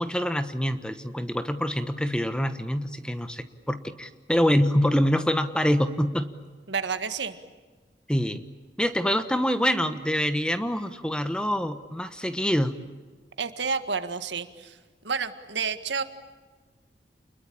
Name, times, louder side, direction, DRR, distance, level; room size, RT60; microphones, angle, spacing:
voice 1, 0.0-6.3 8.1-8.5 8.8-12.7, equal, 5° left, 10 dB, 1.1 m, -25 dB
voice 2, 6.7-7.3 13.4-14.8 15.0-16.0, right 5 dB, 85° right, 9 dB, 1.8 m, -30 dB
29.5 x 21.5 x 8.8 m, 1.4 s
head